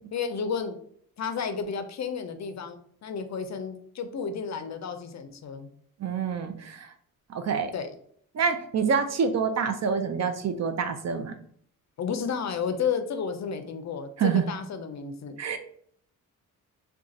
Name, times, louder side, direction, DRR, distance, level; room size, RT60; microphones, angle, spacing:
voice 1, 0.1-0.8 1.2-5.7 7.7-7.9 12.0-15.4, left 6 dB, 50° left, 8 dB, 0.5 m, -32 dB
voice 2, 6.0-6.9 7.3-7.7 8.4-11.3 14.2-14.4 15.4-15.6, right 6 dB, 45° right, 8 dB, 0.5 m, -26 dB
2.4 x 2.3 x 4.0 m, 0.62 s
cardioid pair, 65°, 37 cm